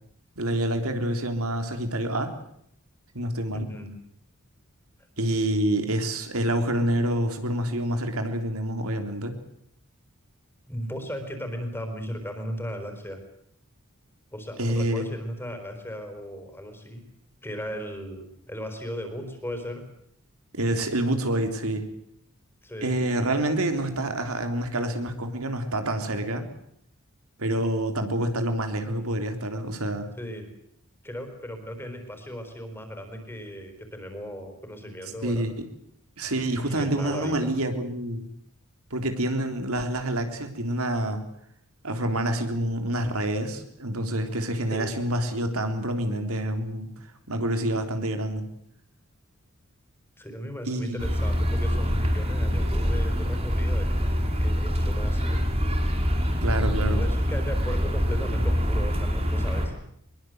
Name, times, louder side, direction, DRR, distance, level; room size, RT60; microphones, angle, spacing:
voice 1, 0.4-2.3 3.2-3.7 5.2-9.4 14.6-15.1 20.5-21.9 22.8-26.5 27.4-30.1 35.2-35.7 36.2-38.3 38.9-41.2 41.8-46.9 47.3-48.5 50.7-51.0 56.4-57.0, right 1 dB, 80° right, 6 dB, 3.5 m, -27 dB
voice 2, 3.5-3.9 10.7-13.2 14.3-17.0 17.4-19.8 22.6-23.0 30.2-30.5 31.0-35.5 36.3-37.5 44.7-44.9 50.2-53.9 54.4-55.4 56.8-59.7, equal, 10° left, 6 dB, 4.6 m, -36 dB
sound 1, 51.0-59.7, equal, 30° right, 5.4 m, -25 dB
23.0 x 22.5 x 7.9 m, 0.70 s
head